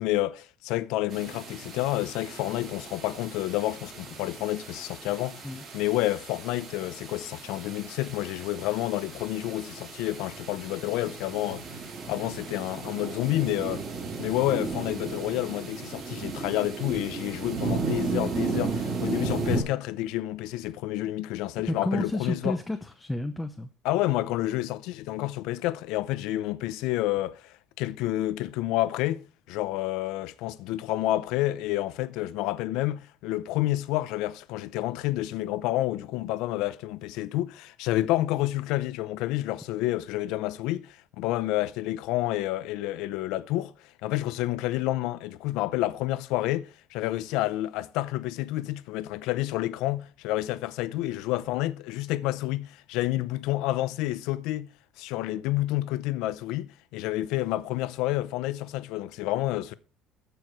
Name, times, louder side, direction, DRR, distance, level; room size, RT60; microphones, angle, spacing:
voice 1, 0.0-5.5 5.7-13.8 14.2-22.6 23.8-43.7 44.0-54.7 55.0-59.7, left 16 dB, 80° left, 0.6 m, -29 dB
sound 1, 1.1-19.6, right 4 dB, 40° right, 4.2 m, -35 dB
voice 2, 21.7-23.7, left 1 dB, 5° left, 0.7 m, -31 dB
14.0 x 4.7 x 4.7 m
cardioid pair, 120°, 0 cm